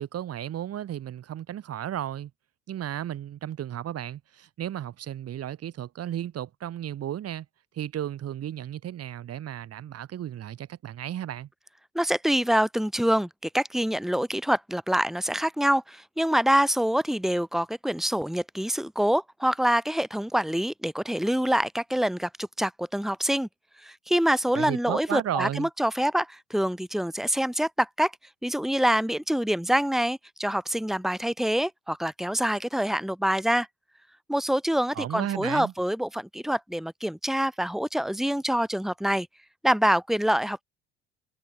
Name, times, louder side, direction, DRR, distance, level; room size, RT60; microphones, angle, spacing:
voice 1, 0.0-2.3 2.7-7.5 7.7-11.5 24.5-25.7 34.9-35.7, right 11 dB, 50° right, 6.4 m, -34 dB
voice 2, 11.9-23.5 23.8-28.1 28.4-33.7 34.3-39.3 39.6-40.6, equal, ahead, 4.2 m, -26 dB
hypercardioid pair, 60°, 31 cm